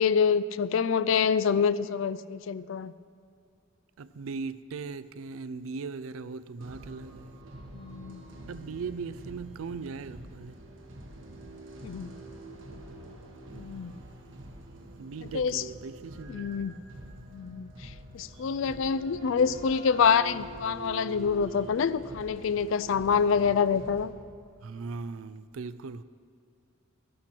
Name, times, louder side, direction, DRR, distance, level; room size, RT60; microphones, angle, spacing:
voice 1, 0.0-2.9 7.7-8.2 11.8-12.1 13.5-13.9 15.3-15.6 16.3-16.7 17.3-24.1, left 6 dB, 70° left, 0.4 m, -26 dB
voice 2, 4.0-7.4 8.5-10.5 15.0-16.5 24.6-26.0, right 4 dB, 90° right, 0.4 m, -39 dB
sound 1, 6.6-24.1, right 2 dB, 70° right, 1.3 m, -45 dB
13.0 x 12.0 x 4.5 m
head